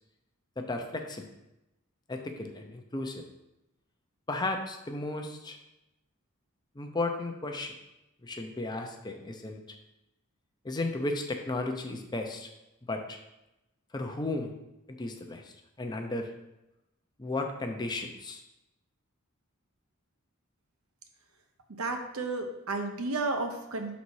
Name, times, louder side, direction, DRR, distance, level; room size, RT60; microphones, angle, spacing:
voice 1, 0.6-1.2 2.1-3.2 4.3-5.6 6.8-7.7 8.2-9.6 10.6-12.5 12.8-13.2 13.9-14.5 14.9-16.3 17.2-18.4, left 2 dB, 20° left, 4 dB, 0.5 m, -34 dB
voice 2, 21.7-24.0, right 3 dB, 75° right, 4 dB, 0.8 m, -32 dB
6.3 x 4.1 x 4.7 m, 0.93 s
head